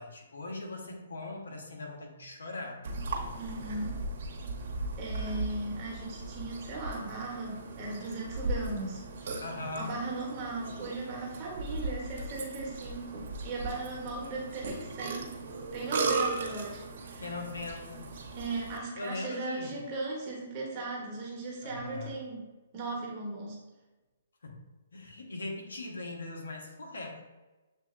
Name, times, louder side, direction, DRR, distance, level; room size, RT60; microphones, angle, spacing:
voice 1, 0.0-2.8 9.4-9.9 14.2-14.3 16.5-16.6 17.2-18.0 18.7-19.8 21.6-22.1 24.4-24.6 24.9-27.2, left 2 dB, 85° left, 1 dB, 1.0 m, -40 dB
Burping eructation, 2.8-18.8, right 3 dB, 60° right, 0.9 m, -37 dB
voice 2, 3.4-4.0 5.0-9.0 9.7-15.4 15.7-17.2 18.4-22.5 22.7-23.6, right 2 dB, 30° right, -3 dB, 1.1 m, -37 dB
7.1 x 2.7 x 2.5 m, 1.2 s
hypercardioid pair, 150°, 0 cm